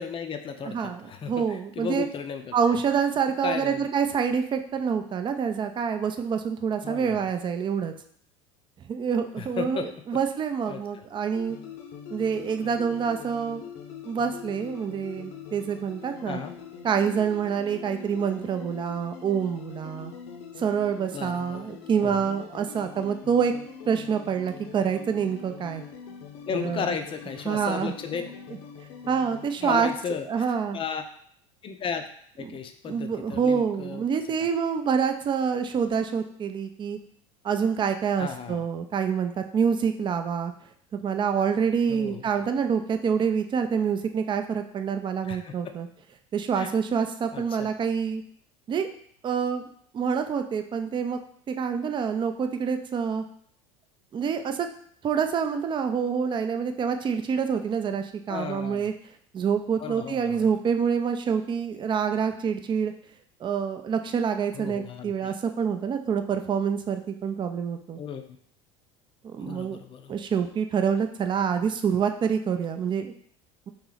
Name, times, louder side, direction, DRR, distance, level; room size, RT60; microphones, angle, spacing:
voice 1, 0.0-2.8 3.4-3.9 6.8-7.2 9.4-9.9 10.7-10.8 16.2-16.6 21.1-21.6 22.0-22.2 26.5-28.2 29.6-30.3 30.7-31.0 31.6-32.0 32.4-34.0 34.4-34.5 38.2-38.6 41.9-42.2 45.2-45.5 46.6-46.7 47.3-47.7 58.3-58.9 59.8-60.5 64.5-65.3 68.0-68.2 69.4-70.1, left 6 dB, 30° left, 7 dB, 0.5 m, -34 dB
voice 2, 0.7-2.1 2.5-7.9 8.9-11.6 12.1-13.6 14.1-16.4 16.8-20.1 20.6-23.5 23.9-25.8 26.5-27.0 27.5-27.9 29.1-29.9 30.3-30.8 32.4-32.6 32.9-37.0 37.4-40.5 41.0-45.9 46.3-48.2 48.7-48.9 49.2-49.7 49.9-51.2 51.5-53.2 54.1-54.7 55.0-58.9 59.3-62.9 63.4-68.0 69.2-69.8 70.1-73.1, right 6 dB, 30° right, 7 dB, 0.5 m, -27 dB
sound 1, 11.3-29.5, left 7 dB, 65° left, 0.8 m, -43 dB
3.0 x 2.9 x 3.9 m, 0.62 s
hypercardioid pair, 90°, 17 cm